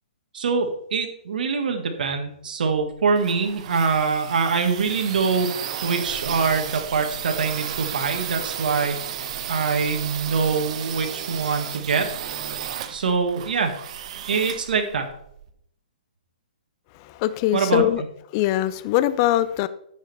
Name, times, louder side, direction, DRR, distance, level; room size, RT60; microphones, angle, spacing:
voice 1, 0.3-5.5 5.8-9.0 9.5-12.1 12.9-13.7 14.3-15.1 17.5-17.8, right 5 dB, 70° right, 4 dB, 1.5 m, -24 dB
sound 1, 2.8-15.5, right 9 dB, 45° right, 0.9 m, -34 dB
voice 2, 16.9-18.0 18.3-19.7, left 14 dB, 30° left, 14 dB, 0.4 m, -22 dB
10.0 x 7.2 x 3.4 m, 0.72 s
hypercardioid pair, 155°, 5 cm